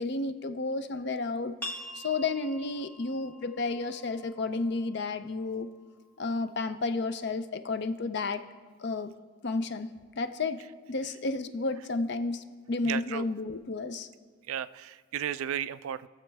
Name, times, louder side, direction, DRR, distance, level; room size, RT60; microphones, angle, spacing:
voice 1, 0.0-1.5 2.0-5.7 6.2-8.4 8.8-9.1 9.4-10.6 10.9-14.1, left 3 dB, 50° left, 10 dB, 0.5 m, -32 dB
sound 1, 1.6-7.0, left 1 dB, 10° left, 1.1 m, -46 dB
voice 2, 12.8-13.3 14.5-16.1, right 10 dB, 80° right, 16 dB, 0.3 m, -34 dB
20.0 x 7.1 x 3.4 m, 1.5 s
head